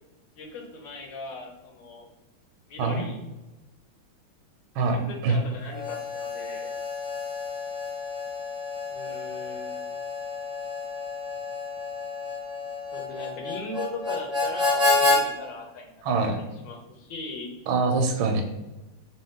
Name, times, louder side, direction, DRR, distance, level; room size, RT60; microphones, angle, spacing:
voice 1, 0.4-2.1 2.7-3.2 4.8-6.7 8.9-9.8 12.9-15.9 16.3-17.6, left 3 dB, 70° left, 1 dB, 1.3 m, -39 dB
voice 2, 4.8-5.4 16.0-16.4 17.7-18.4, right 3 dB, 80° right, 5 dB, 1.4 m, -24 dB
Harmonica, 5.7-15.2, left 3 dB, 5° right, 0.7 m, -29 dB
3.4 x 2.8 x 3.5 m, 1.0 s
omnidirectional pair, 2.2 m